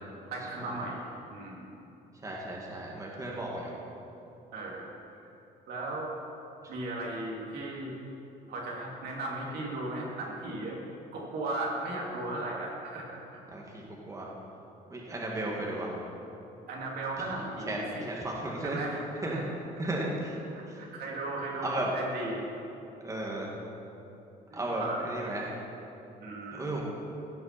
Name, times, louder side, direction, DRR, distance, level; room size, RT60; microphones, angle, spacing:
voice 1, 0.3-1.8 4.5-4.9 5.7-6.1 6.7-7.9 8.5-10.8 11.1-13.2 16.7-18.1 18.6-19.5 19.8-19.9 20.5-22.5 24.5-25.1 26.2-26.8, right 2 dB, 70° right, -3 dB, 2.6 m, -36 dB
voice 2, 2.2-3.7 13.5-14.3 14.9-15.9 17.3-17.4 17.7-18.8 19.2-19.4 19.8-20.3 21.6-21.9 23.0-23.5 24.5-25.4 26.5-26.8, right 1 dB, 20° right, -3 dB, 1.9 m, -34 dB
16.0 x 6.0 x 5.8 m, 2.9 s
cardioid pair, 110°, 17 cm